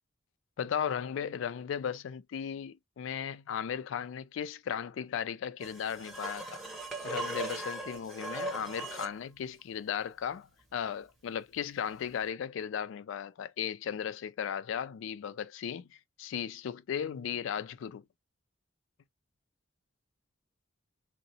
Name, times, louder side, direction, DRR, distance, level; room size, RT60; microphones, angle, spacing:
voice 1, 0.6-6.6 7.0-18.0, left 8 dB, 80° left, 0.3 m, -36 dB
sound 1, 5.6-9.2 12.1-12.2, right 2 dB, ahead, 0.7 m, -39 dB
3.8 x 2.0 x 2.7 m
head